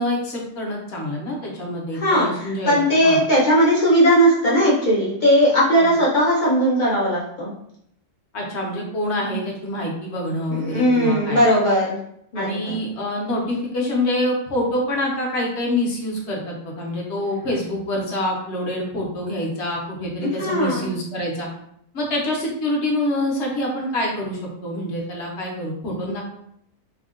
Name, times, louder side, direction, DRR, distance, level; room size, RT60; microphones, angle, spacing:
voice 1, 0.0-2.8 3.0-3.2 5.8-5.9 8.3-11.5 12.3-21.5 21.9-26.3, left 1 dB, 60° left, -1 dB, 0.8 m, -26 dB
voice 2, 1.9-7.5 10.5-12.0 12.3-12.8 20.2-20.9, equal, 75° left, -7 dB, 0.4 m, -18 dB
3.5 x 2.1 x 2.4 m, 0.71 s
omnidirectional pair, 1.6 m